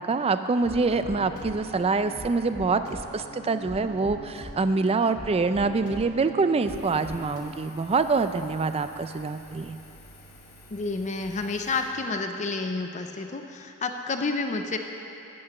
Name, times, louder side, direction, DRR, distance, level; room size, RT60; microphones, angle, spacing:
voice 1, 0.0-9.8, right 4 dB, 25° right, 10 dB, 0.4 m, -25 dB
sound 1, 0.6-7.4, left 1 dB, 65° left, 2.6 m, -42 dB
Engine, 6.7-11.8, left 1 dB, 90° left, 2.1 m, -50 dB
voice 2, 10.7-14.8, left 3 dB, 35° left, 5 dB, 0.5 m, -30 dB
8.7 x 8.6 x 7.0 m, 2.8 s
head